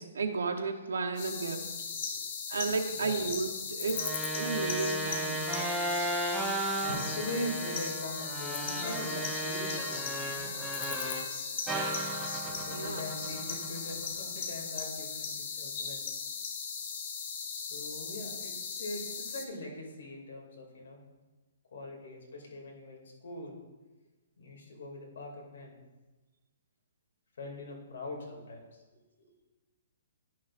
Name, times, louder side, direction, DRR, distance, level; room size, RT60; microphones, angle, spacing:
voice 1, 0.0-1.7 2.5-5.5 12.7-13.0, right 4 dB, 85° right, 4 dB, 0.9 m, -33 dB
sound 1, 1.2-19.5, left 6 dB, 45° left, 0.9 m, -38 dB
voice 2, 2.9-3.3 6.8-11.2 12.4-16.1 17.7-21.0 21.7-23.6 24.4-25.8 27.4-28.8 29.2-29.3, left 1 dB, 75° left, -2 dB, 2.3 m, -42 dB
sound 2, 3.9-11.3 11.7-14.1, right 2 dB, 5° right, 0.7 m, -35 dB
10.5 x 6.4 x 2.5 m, 1.2 s
hypercardioid pair, 155°, 0 cm